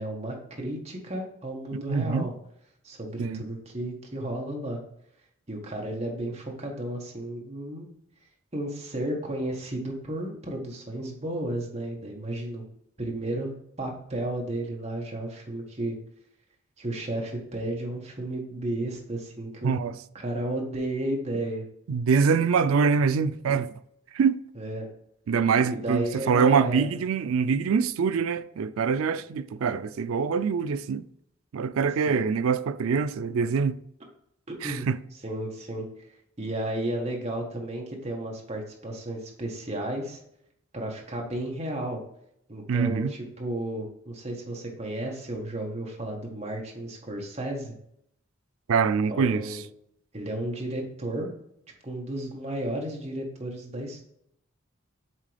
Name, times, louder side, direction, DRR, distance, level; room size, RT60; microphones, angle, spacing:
voice 1, 0.0-2.3 2.8-4.8 5.5-7.9 8.5-12.6 13.0-13.5 13.8-16.0 16.8-21.6 24.5-24.9 25.7-26.9 32.1-32.3 34.5-34.9 35.2-35.9 36.4-40.2 40.7-42.0 42.5-47.7 49.1-49.6 50.1-51.3 51.8-54.1, right 1 dB, 30° right, 1.3 m, -33 dB
voice 2, 1.7-2.3 3.2-3.4 19.6-19.9 21.9-23.7 24.1-24.4 25.3-31.0 31.5-33.8 34.6-35.0 42.7-43.1 48.7-49.6, right 5 dB, 90° right, 0.4 m, -24 dB
7.6 x 3.7 x 3.3 m
head